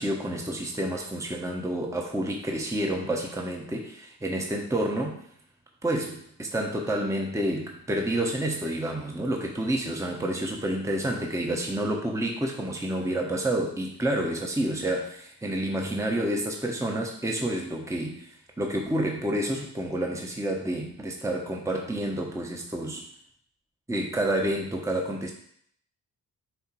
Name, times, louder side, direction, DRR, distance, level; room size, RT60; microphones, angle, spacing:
voice 1, 0.0-5.2 5.8-23.0 23.9-25.3, right 1 dB, 10° right, 0 dB, 1.0 m, -29 dB
7.9 x 2.9 x 4.5 m, 0.65 s
cardioid pair, 65°, 38 cm